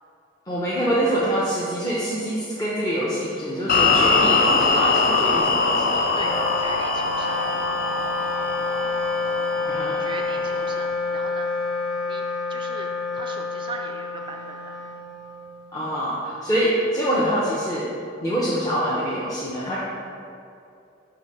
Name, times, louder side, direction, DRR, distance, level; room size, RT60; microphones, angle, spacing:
voice 1, 0.5-6.1 9.7-10.0 15.7-17.8 18.2-19.8, equal, 20° left, -8 dB, 0.8 m, -25 dB
sound 1, 3.7-10.9, left 3 dB, 45° left, 0.5 m, -22 dB
Wind instrument woodwind instrument, 6.1-15.7, left 3 dB, 75° left, 1.0 m, -29 dB
voice 2, 6.2-7.4 10.0-11.5 12.0-14.8, right 3 dB, 25° right, 2 dB, 0.3 m, -39 dB
6.0 x 4.8 x 4.8 m, 2.6 s
head